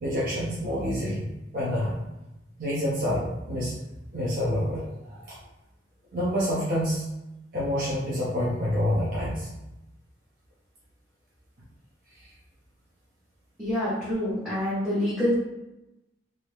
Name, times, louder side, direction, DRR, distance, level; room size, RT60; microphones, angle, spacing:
voice 1, 0.0-1.3 1.5-2.0 2.6-3.8 4.1-4.9 5.1-5.3 6.1-7.0 7.5-9.5, equal, 50° right, -7 dB, 0.7 m, -27 dB
voice 2, 13.6-15.3, left 1 dB, 5° right, -13 dB, 1.2 m, -26 dB
2.7 x 2.7 x 3.3 m, 0.95 s
head